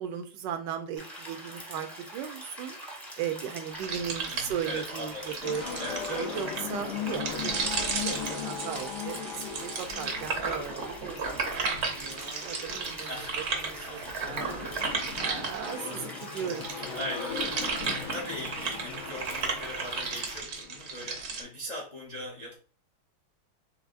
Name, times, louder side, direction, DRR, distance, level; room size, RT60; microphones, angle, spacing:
voice 1, 0.0-2.8 3.2-5.6 6.1-11.5 11.8-13.1 13.6-14.7 15.2-17.0 17.8-17.9, right 8 dB, 75° right, 7 dB, 1.1 m, -37 dB
sound 1, 1.0-20.4, right 1 dB, ahead, 0.6 m, -44 dB
sound 2, 3.7-15.9 16.3-21.4, right 4 dB, 60° right, 0.7 m, -34 dB
voice 2, 4.3-5.4 5.8-6.3 13.0-14.3 16.9-22.5, equal, 65° left, -2 dB, 0.4 m, -40 dB
sound 3, 5.4-21.2, left 7 dB, 80° left, 1.7 m, -39 dB
4.6 x 3.4 x 2.5 m, 0.38 s
omnidirectional pair, 2.1 m